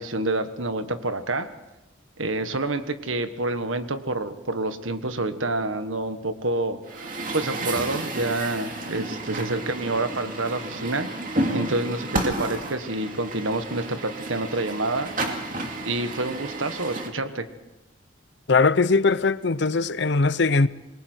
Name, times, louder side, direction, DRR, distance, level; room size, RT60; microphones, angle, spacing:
voice 1, 0.0-1.5 2.2-11.1 11.5-15.1 15.8-17.5, right 2 dB, 80° right, 1.5 m, -28 dB
Truck, 6.9-17.1, right 2 dB, 40° right, 2.5 m, -31 dB
voice 2, 18.5-20.7, left 4 dB, 55° left, 0.7 m, -20 dB
27.5 x 22.0 x 4.6 m
head